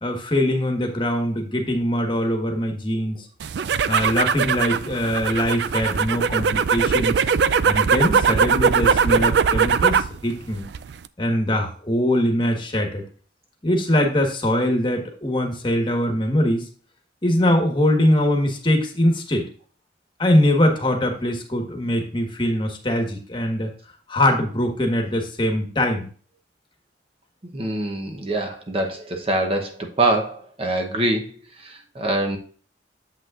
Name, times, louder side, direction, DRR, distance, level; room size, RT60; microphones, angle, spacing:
voice 1, 0.0-3.2 3.9-7.1 7.6-10.6 11.2-13.0 13.6-16.6 17.2-19.5 20.2-23.7 24.1-26.1, left 1 dB, 25° left, 3 dB, 1.3 m, -22 dB
sound 1, 3.4-10.2 10.5-11.1, right 6 dB, 65° right, 0.4 m, -20 dB
voice 2, 27.5-31.3 31.6-32.4, right 2 dB, 30° right, 3 dB, 0.9 m, -24 dB
8.5 x 7.7 x 2.5 m, 0.42 s
head